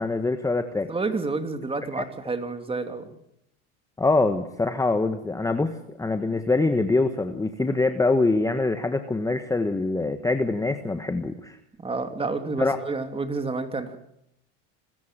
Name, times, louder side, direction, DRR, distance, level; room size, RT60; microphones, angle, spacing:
voice 1, 0.0-0.9 2.0-2.1 4.0-11.6 12.6-12.8, left 3 dB, 10° left, 8 dB, 1.3 m, -24 dB
voice 2, 0.9-3.0 11.8-14.0, right 3 dB, 15° right, 7 dB, 2.9 m, -29 dB
25.5 x 14.0 x 7.5 m, 0.77 s
supercardioid pair, 105°, 34 cm